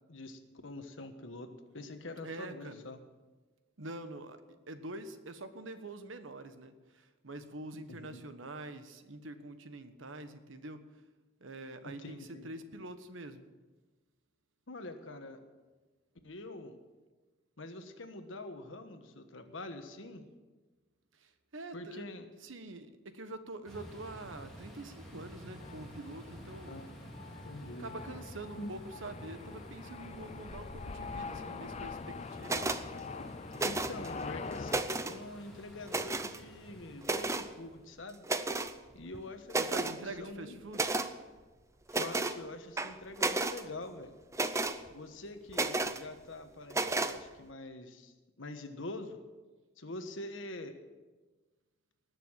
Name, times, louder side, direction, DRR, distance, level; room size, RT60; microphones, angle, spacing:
voice 1, 0.1-1.5 1.7-3.0 7.9-8.2 11.8-12.5 14.7-15.4 16.2-16.8 17.6-20.3 21.7-22.3 26.7-26.9 27.4-27.9 28.6-28.7 33.2-38.2 38.9-40.6 41.9-44.2 44.9-49.2 49.8-50.8, left 2 dB, 75° left, 7 dB, 1.4 m, -45 dB
voice 2, 2.2-2.8 3.8-4.4 4.7-11.0 11.4-13.4 21.1-22.1 22.4-26.8 27.8-32.9 39.5-40.9, right 2 dB, 80° right, 10 dB, 1.2 m, -45 dB
sound 1, 23.7-37.9, equal, ahead, 3.4 m, -51 dB
sound 2, 25.6-34.8, left 4 dB, 35° left, 0.5 m, -44 dB
sound 3, 32.4-32.8 33.5-34.1 34.5-35.2 35.9-36.4 37.0-37.5 38.2-38.7 39.1-39.2 39.5-40.0 40.7-41.1 41.9-42.4 42.8-43.6 44.3-44.8 45.5-46.0 46.7-47.2, right 3 dB, 15° right, 0.6 m, -32 dB
19.0 x 6.8 x 7.5 m, 1.3 s
head